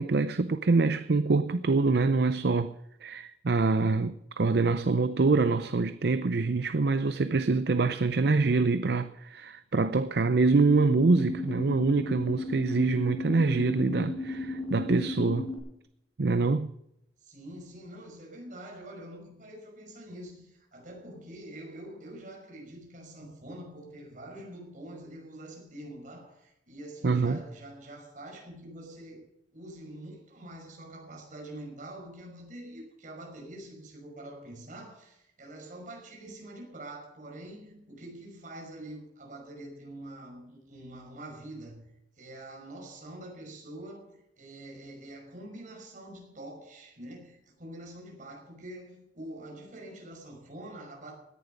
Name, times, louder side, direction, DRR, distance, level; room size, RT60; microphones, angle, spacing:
voice 1, 0.0-2.7 3.0-15.5 16.2-16.7 27.0-27.4, right 3 dB, 65° right, 0.6 m, -25 dB
sound 1, 10.6-15.6, left 2 dB, 20° left, 5.2 m, -35 dB
voice 2, 17.2-29.3 29.5-41.9 42.2-51.2, right 1 dB, 45° right, 5.5 m, -45 dB
17.0 x 11.0 x 5.3 m
head